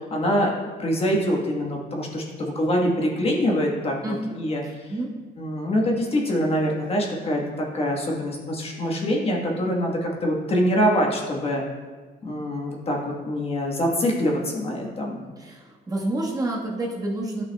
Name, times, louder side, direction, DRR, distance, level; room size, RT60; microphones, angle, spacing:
voice 1, 0.1-4.6 5.4-11.6 12.2-15.3, equal, 35° left, -1 dB, 1.3 m, -24 dB
voice 2, 4.6-5.1 15.4-17.4, right 2 dB, 20° right, -3 dB, 1.3 m, -29 dB
11.5 x 5.9 x 2.2 m, 1.4 s
cardioid pair, 110°, 17 cm